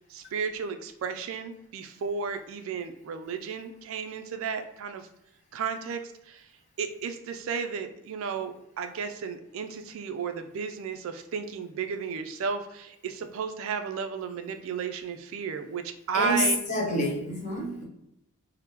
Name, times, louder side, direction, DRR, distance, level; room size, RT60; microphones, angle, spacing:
voice 1, 0.1-5.1 5.5-6.5 6.8-16.6, right 6 dB, 60° right, 8 dB, 0.3 m, -33 dB
voice 2, 16.1-17.8, equal, 35° left, -4 dB, 1.0 m, -27 dB
3.5 x 2.1 x 2.8 m, 0.82 s
head